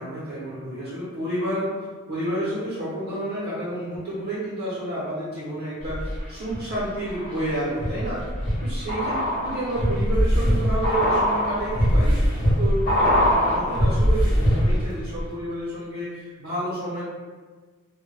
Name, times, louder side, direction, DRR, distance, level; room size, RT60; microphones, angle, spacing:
voice 1, 0.0-1.7 2.1-8.3 8.6-12.3 12.6-17.0, right 1 dB, 60° right, -10 dB, 0.7 m, -30 dB
sound 1, 5.8-6.6 7.0-14.9 15.2-15.3, equal, 40° left, 0.8 m, -22 dB
2.1 x 2.1 x 3.0 m, 1.4 s
head